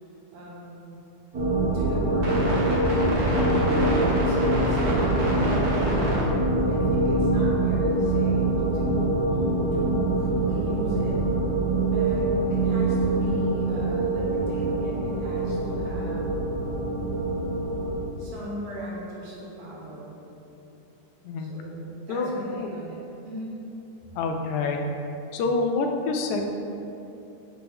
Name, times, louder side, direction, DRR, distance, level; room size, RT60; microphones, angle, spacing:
voice 1, 0.3-1.0 1.7-2.5 2.9-9.3 9.7-11.2 11.8-16.3 18.2-20.2 21.4-23.5, equal, 75° right, -6 dB, 2.9 m, -39 dB
sound 1, 1.3-18.0, right 2 dB, 50° right, 1.2 m, -24 dB
voice 2, 22.1-22.7 24.2-24.9 25.3-26.4, left 3 dB, 80° left, 3 dB, 1.9 m, -27 dB
5.3 x 4.5 x 5.3 m, 2.9 s
omnidirectional pair, 3.6 m